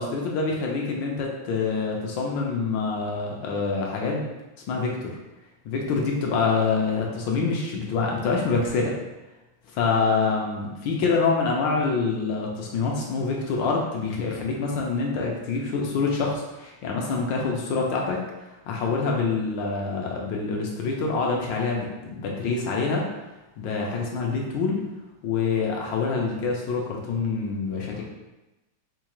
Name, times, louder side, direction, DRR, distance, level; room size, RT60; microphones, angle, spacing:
voice 1, 0.0-4.2 4.7-5.2 5.6-9.0 9.7-18.2 18.7-23.1 23.6-24.8 25.2-28.0, left 4 dB, 75° left, -1 dB, 1.2 m, -26 dB
4.4 x 2.3 x 2.9 m, 1.0 s
omnidirectional pair, 2.3 m